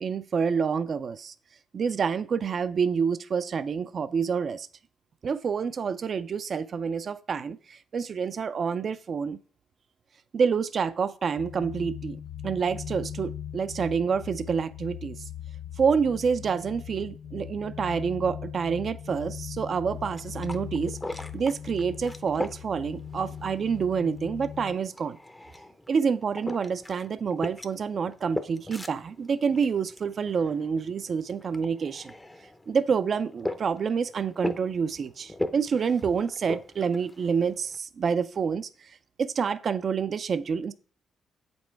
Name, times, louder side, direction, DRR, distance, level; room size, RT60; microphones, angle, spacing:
voice 1, 0.0-1.3 1.7-4.7 5.2-9.4 10.3-12.2 12.4-15.3 15.8-21.0 21.3-25.2 25.9-32.1 32.7-40.7, right 6 dB, 50° right, 0.4 m, -28 dB
sound 1, 11.4-24.8, left 9 dB, 70° left, 0.3 m, -40 dB
sound 2, 19.9-37.8, left 1 dB, 10° left, 0.6 m, -40 dB
7.9 x 5.3 x 4.5 m
cardioid pair, 90°, 0 cm